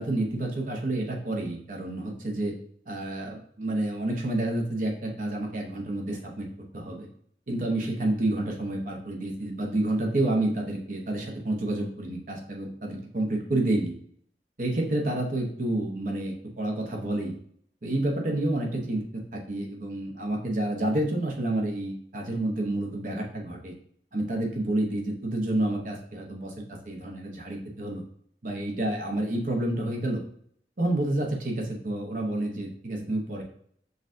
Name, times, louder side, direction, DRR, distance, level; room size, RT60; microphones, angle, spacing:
voice 1, 0.0-2.5 2.9-6.5 6.7-7.1 7.5-13.9 14.6-17.3 17.8-23.7 24.1-28.0 28.4-30.2 30.8-33.4, right 1 dB, 50° right, 1 dB, 0.8 m, -29 dB
6.4 x 2.4 x 2.5 m, 0.63 s
head